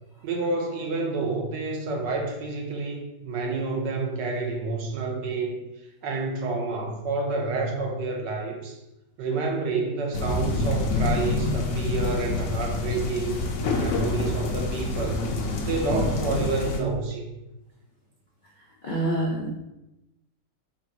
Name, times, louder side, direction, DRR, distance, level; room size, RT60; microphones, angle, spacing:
voice 1, 0.2-5.6 6.0-8.8 9.2-13.5 13.7-15.3 15.6-17.2, right 3 dB, 80° right, 1 dB, 1.4 m, -29 dB
sound 1, 10.1-16.8, left 2 dB, 65° left, 0.8 m, -27 dB
voice 2, 18.8-19.5, right 1 dB, 85° left, -4 dB, 0.4 m, -26 dB
4.3 x 2.6 x 4.5 m, 0.94 s
omnidirectional pair, 1.9 m